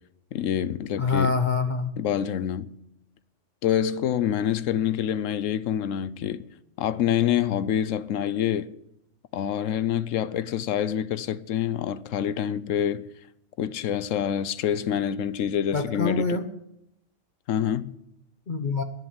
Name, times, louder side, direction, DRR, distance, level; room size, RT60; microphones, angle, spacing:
voice 1, 0.3-1.3 2.0-2.7 3.6-6.5 6.8-8.7 9.3-13.1 13.6-16.4 17.5-18.0, left 10 dB, 80° left, 1.1 m, -26 dB
voice 2, 1.0-1.9 15.7-16.5 18.5-18.8, left 4 dB, 45° left, 0.9 m, -25 dB
10.5 x 10.5 x 8.8 m
omnidirectional pair, 1.3 m